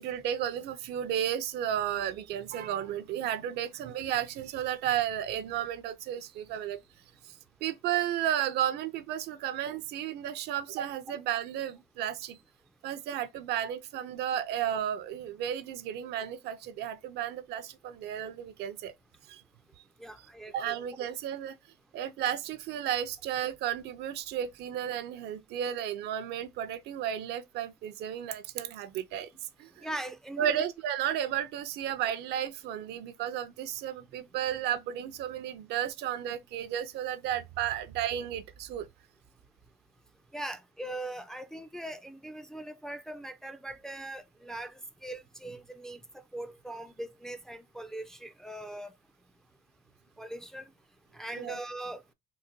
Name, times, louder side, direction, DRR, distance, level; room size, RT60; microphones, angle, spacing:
voice 1, 0.0-6.8 7.2-7.4 7.6-12.4 12.8-18.9 19.3-19.4 20.5-21.6 21.9-29.3 29.6-29.9 30.4-38.9 51.3-51.6, right 10 dB, 75° right, 0.5 m, -33 dB
voice 2, 20.0-20.7 29.8-30.6 40.3-46.0 46.3-48.9 50.2-50.7 51.1-52.0, right 1 dB, 5° left, 0.3 m, -40 dB
3.8 x 2.1 x 2.6 m
cardioid pair, 110°, 17 cm